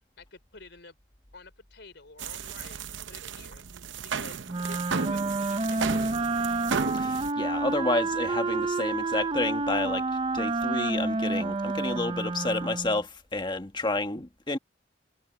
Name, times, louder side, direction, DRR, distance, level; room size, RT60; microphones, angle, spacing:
voice 1, 0.2-1.0 1.3-3.6 4.0-6.7, left 3 dB, 65° left, 5.0 m, -50 dB
sound 1, 2.2-7.3, right 5 dB, 90° right, 0.7 m, -34 dB
Wind instrument woodwind instrument, 4.5-13.0, right 3 dB, 30° right, 0.6 m, -29 dB
voice 2, 6.9-10.1 10.3-14.6, left 2 dB, 25° left, 1.5 m, -30 dB
head